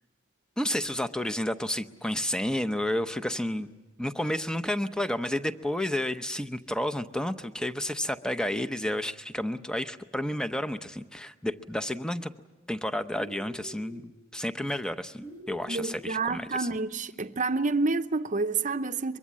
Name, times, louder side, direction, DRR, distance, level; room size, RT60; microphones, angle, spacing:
voice 1, 0.6-3.7 4.0-12.3 12.7-16.7, left 1 dB, 5° left, 0.7 m, -31 dB
sound 1, 13.1-14.1 15.2-16.1, equal, 15° right, 1.2 m, -46 dB
voice 2, 15.7-19.2, right 3 dB, 40° right, 0.8 m, -28 dB
23.5 x 23.0 x 7.5 m
head